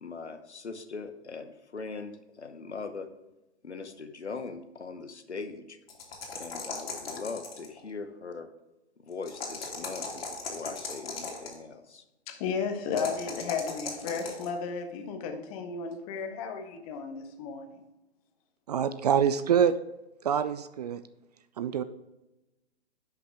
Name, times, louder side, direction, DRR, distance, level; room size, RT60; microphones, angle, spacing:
voice 1, 0.0-3.1 3.6-5.8 6.3-8.5 9.0-12.0, left 4 dB, 85° left, 9 dB, 1.0 m, -40 dB
sound 1, 5.9-7.8 9.2-11.6 12.9-14.5, left 4 dB, 60° left, 2.5 m, -37 dB
voice 2, 12.3-17.8, left 5 dB, 35° left, 6 dB, 1.2 m, -34 dB
voice 3, 18.7-19.8 20.2-21.0 21.6-21.8, right 8 dB, 40° right, 13 dB, 0.4 m, -25 dB
10.5 x 5.9 x 3.5 m, 0.99 s
figure-of-eight pair, 120°, 33 cm